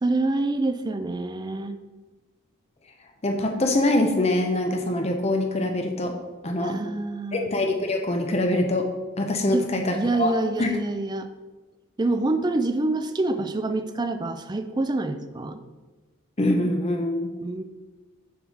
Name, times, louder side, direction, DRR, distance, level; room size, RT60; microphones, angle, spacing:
voice 1, 0.0-1.8 6.6-7.5 9.5-11.3 12.0-15.6 17.4-17.6, right 2 dB, 20° right, 9 dB, 0.4 m, -26 dB
voice 2, 3.2-6.1 6.4-6.8 7.3-8.9 9.2-10.3 10.6-10.7 16.4-17.3, left 1 dB, 30° left, 3 dB, 0.6 m, -24 dB
7.2 x 3.6 x 6.1 m, 1.3 s
head